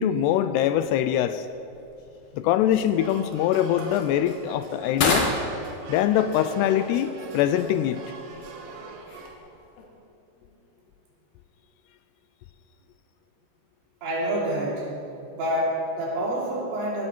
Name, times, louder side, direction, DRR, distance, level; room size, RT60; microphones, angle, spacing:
voice 1, 0.0-1.5 2.3-5.3 5.9-8.0, left 11 dB, 85° left, 11 dB, 2.5 m, -23 dB
sound 1, 0.7-9.9, left 3 dB, 60° left, 3.3 m, -34 dB
sound 2, 2.7-9.4, right 3 dB, 65° right, 2.2 m, -42 dB
voice 2, 14.0-14.9 15.3-17.1, right 1 dB, 85° right, -5 dB, 5.6 m, -27 dB
16.5 x 15.5 x 4.5 m, 2.8 s
omnidirectional pair, 5.2 m